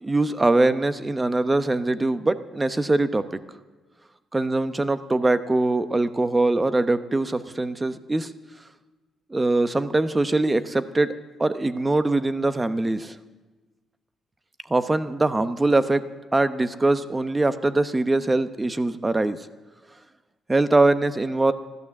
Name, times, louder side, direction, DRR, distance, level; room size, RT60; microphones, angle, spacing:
voice 1, 0.0-3.2 4.3-8.3 9.3-11.1 11.4-13.1 14.7-16.0 16.3-19.4 20.5-21.5, right 2 dB, 20° right, 11 dB, 0.8 m, -22 dB
15.0 x 12.0 x 7.2 m, 1.2 s
cardioid pair, 90°, 0 cm